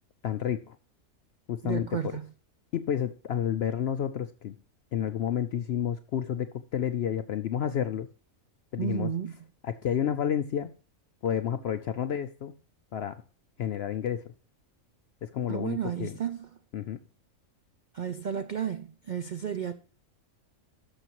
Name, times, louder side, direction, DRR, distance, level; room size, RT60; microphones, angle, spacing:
voice 1, 0.2-0.8 1.5-2.2 2.7-4.6 4.9-8.1 8.7-9.1 9.6-10.7 11.2-12.5 12.9-13.2 13.6-14.3 15.2-16.2 16.7-17.0, left 9 dB, 70° left, 0.6 m, -30 dB
voice 2, 1.6-2.2 8.8-9.3 15.5-16.5 17.9-19.7, right 8 dB, 75° right, 0.4 m, -32 dB
11.5 x 6.6 x 2.9 m
omnidirectional pair, 1.5 m